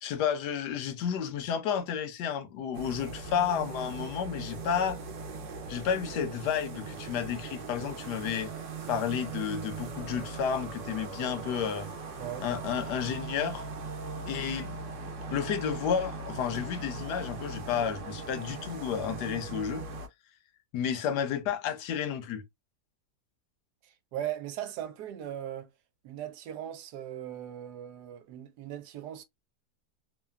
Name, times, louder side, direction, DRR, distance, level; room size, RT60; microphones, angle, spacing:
voice 1, 0.0-5.0 5.7-8.5 8.9-11.9 12.4-13.7 14.3-14.8 15.3-19.8 20.7-22.4, left 8 dB, 80° left, 1.3 m, -31 dB
sound 1, 2.7-20.1, right 4 dB, 60° right, 0.9 m, -40 dB
voice 2, 12.2-12.5 23.8-25.7 26.0-29.2, right 11 dB, 80° right, 1.2 m, -39 dB
3.2 x 2.2 x 2.2 m
omnidirectional pair, 1.8 m